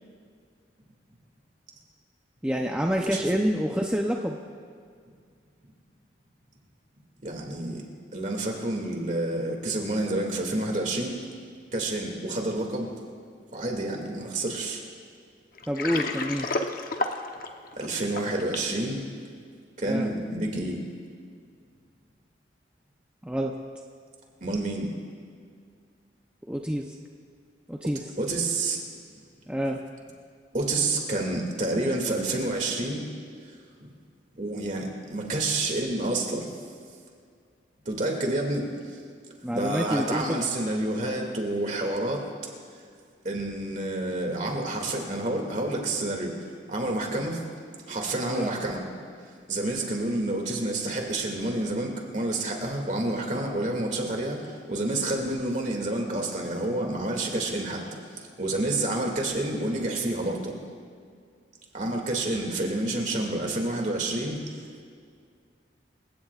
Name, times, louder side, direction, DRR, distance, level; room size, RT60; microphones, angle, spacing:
voice 1, 2.4-4.4 15.7-16.5 19.9-20.1 23.2-23.5 26.5-27.0 27.7-28.1 29.5-29.8 39.4-40.4 48.3-48.5, equal, 5° right, 0 dB, 0.7 m, -27 dB
voice 2, 7.2-11.2 11.7-12.9 13.5-14.8 17.8-19.0 19.8-20.8 24.4-24.9 28.2-28.8 30.5-33.0 33.8-33.9 34.3-36.5 37.9-38.7 39.5-42.3 43.2-46.4 46.7-47.4 47.9-48.8 49.5-58.0 58.4-60.5 61.7-64.4, right 2 dB, 45° right, 1 dB, 2.4 m, -29 dB
Water, 15.6-18.7, left 2 dB, 50° left, 0.9 m, -31 dB
27.0 x 17.0 x 2.5 m, 2.2 s
head